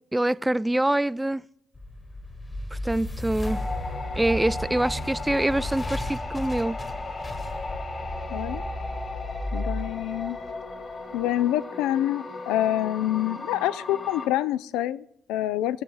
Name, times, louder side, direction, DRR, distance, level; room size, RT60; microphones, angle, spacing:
voice 1, 0.1-1.4 2.7-3.6 4.2-6.8, right 1 dB, 10° right, 0.4 m, -25 dB
sound 1, 1.7-10.9, left 1 dB, 25° left, 1.5 m, -34 dB
sound 2, 3.4-14.3, left 3 dB, 40° left, 2.4 m, -36 dB
voice 2, 8.3-8.7 9.5-10.4 11.1-15.8, left 13 dB, 80° left, 0.4 m, -27 dB
17.5 x 7.2 x 3.9 m
hypercardioid pair, 50°, 0 cm